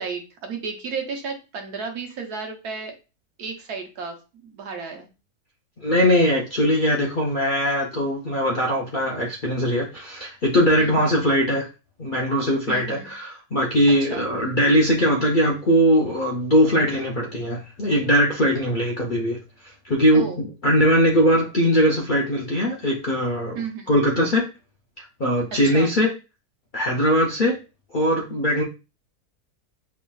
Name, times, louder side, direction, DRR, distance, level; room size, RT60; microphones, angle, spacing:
voice 1, 0.0-2.9 3.4-5.1 10.8-11.2 12.7-13.1 14.0-14.2 20.1-20.4 23.5-23.9 25.6-25.9, right 5 dB, 75° right, 1.4 m, -33 dB
voice 2, 5.8-11.7 12.0-19.4 19.8-23.6 23.9-24.5 25.0-26.1 26.7-27.6 27.9-28.6, equal, 55° left, 0.5 m, -20 dB
4.5 x 3.0 x 2.3 m
omnidirectional pair, 1.6 m